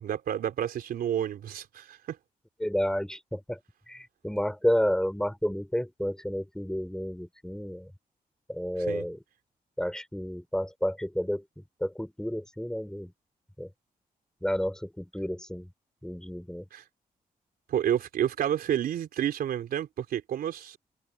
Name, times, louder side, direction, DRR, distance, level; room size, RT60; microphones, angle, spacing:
voice 1, 0.0-2.2 8.9-9.0 16.7-16.8 17.7-20.8, right 10 dB, 85° right, 3.6 m, -30 dB
voice 2, 2.6-3.6 3.9-7.9 8.5-9.2 9.8-13.1 13.6-13.7 14.4-15.7 16.0-16.6, equal, 5° left, 5.7 m, -31 dB
cardioid pair, 65°, 15 cm